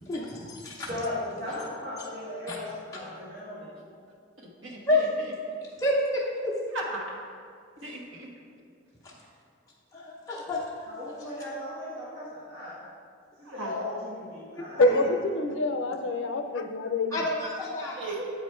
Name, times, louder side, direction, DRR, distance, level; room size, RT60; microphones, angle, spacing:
voice 1, 0.0-1.0 2.5-2.6 4.9-5.1 5.8-6.6 9.0-9.1 9.9-11.3 14.9-15.0 17.1-18.2, left 1 dB, 15° left, -5 dB, 0.6 m, -29 dB
voice 2, 0.9-3.7 10.9-12.8 13.4-14.8, left 1 dB, 75° right, -8 dB, 1.6 m, -36 dB
voice 3, 4.4-4.8 6.7-7.2 7.8-8.3 13.4-13.7 18.0-18.3, right 2 dB, 90° right, -2 dB, 1.3 m, -36 dB
voice 4, 14.8-17.2, left 2 dB, 80° left, 7 dB, 0.5 m, -26 dB
7.8 x 5.1 x 4.4 m, 2.2 s
head